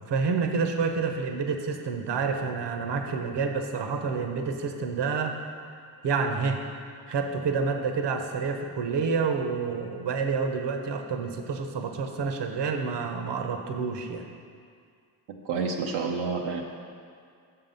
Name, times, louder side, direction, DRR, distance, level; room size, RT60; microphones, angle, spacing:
voice 1, 0.0-5.4 6.0-6.6 7.1-14.3, right 5 dB, 55° right, 5 dB, 0.9 m, -28 dB
voice 2, 15.3-16.6, right 5 dB, 85° right, -1 dB, 0.7 m, -29 dB
6.9 x 5.7 x 5.4 m, 2.2 s
supercardioid pair, 45°, 49 cm